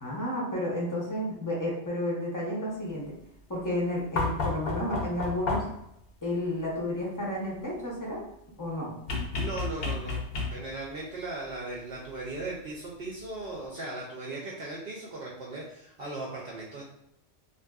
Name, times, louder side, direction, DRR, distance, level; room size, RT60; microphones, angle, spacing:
voice 1, 0.0-3.0 3.5-5.6 6.2-8.2 8.6-8.9, left 1 dB, 25° left, -4 dB, 0.5 m, -31 dB
sound 1, 4.2-5.9 9.1-10.8 12.4-12.5, left 3 dB, 60° left, 0.7 m, -31 dB
voice 2, 9.4-10.2 10.5-16.8, right 2 dB, 60° right, -4 dB, 0.7 m, -37 dB
2.5 x 2.5 x 2.3 m, 0.79 s
omnidirectional pair, 1.2 m